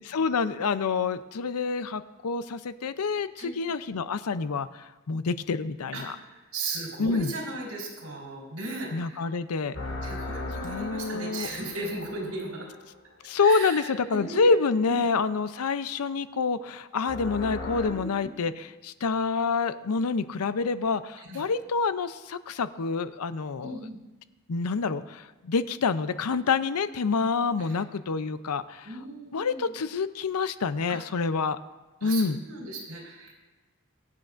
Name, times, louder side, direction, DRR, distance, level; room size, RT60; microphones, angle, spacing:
voice 1, 0.1-6.2 7.0-7.3 8.9-9.8 10.6-11.5 13.2-23.8 24.5-28.9 29.3-31.6 32.0-32.4, left 4 dB, 90° left, 13 dB, 0.6 m, -27 dB
voice 2, 6.3-9.3 10.0-12.7 13.4-15.0 17.8-18.3 21.2-21.4 23.6-24.0 27.6-27.8 28.8-29.6 30.9-31.0 32.0-33.4, right 2 dB, 80° right, -2 dB, 4.1 m, -37 dB
sound 1, 9.7-12.8 17.0-17.9, left 2 dB, 60° left, 2.0 m, -37 dB
23.5 x 8.4 x 2.6 m, 1.2 s
head